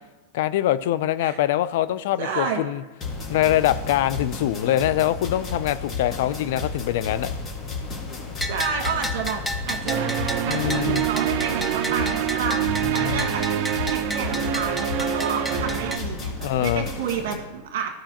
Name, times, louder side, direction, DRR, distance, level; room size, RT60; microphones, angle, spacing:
voice 1, 0.3-2.8 3.3-7.3 10.5-11.0 12.8-13.3 16.4-16.9, left 13 dB, 65° left, 15 dB, 0.4 m, -24 dB
voice 2, 2.2-2.6 8.4-9.4 9.7-10.1 10.5-12.6 12.9-13.4 13.9-17.9, right 6 dB, 70° right, 4 dB, 1.4 m, -30 dB
sound 1, 3.0-17.3, left 3 dB, 30° left, 1.9 m, -33 dB
Bell, 8.4-16.0, equal, 5° left, 0.6 m, -32 dB
sound 2, 9.9-16.0, right 10 dB, 50° right, 0.6 m, -26 dB
14.0 x 4.9 x 2.9 m, 1.1 s
hypercardioid pair, 120°, 0 cm